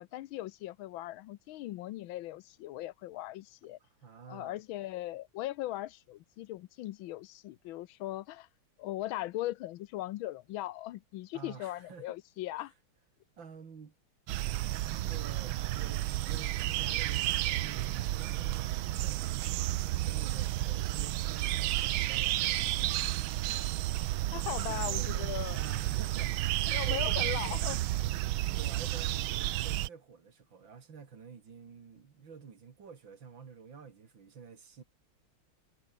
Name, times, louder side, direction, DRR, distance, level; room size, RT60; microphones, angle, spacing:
voice 1, 0.0-3.8 4.3-8.5 8.8-12.7 24.3-25.6 26.7-27.8, left 15 dB, 80° left, 1.4 m, -39 dB
voice 2, 3.8-4.6 11.3-12.2 13.4-14.0 15.1-23.0 24.7-27.6 28.5-34.8, right 6 dB, 65° right, 3.0 m, -49 dB
sound 1, 14.3-29.9, right 15 dB, 85° right, 1.5 m, -32 dB
omnidirectional pair, 2.2 m